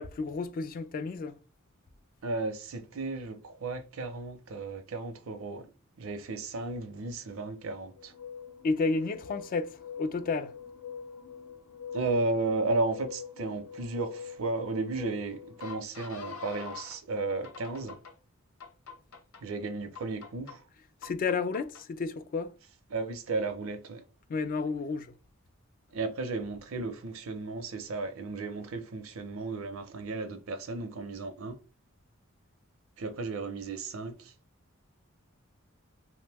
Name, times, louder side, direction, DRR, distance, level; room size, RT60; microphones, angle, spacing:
voice 1, 0.0-1.4 8.6-9.7 10.0-10.5 21.0-22.5 24.3-25.1, left 4 dB, 40° left, 0.3 m, -31 dB
voice 2, 2.2-5.7 6.0-8.1 11.9-18.0 19.4-20.6 22.9-24.0 25.9-31.6 33.0-34.3, right 3 dB, 80° right, 0.6 m, -34 dB
sound 1, 8.0-17.0 17.4-18.1 18.6-19.4 19.9-20.5 21.0-21.8, left 6 dB, 90° left, 0.6 m, -45 dB
2.9 x 2.1 x 3.3 m
head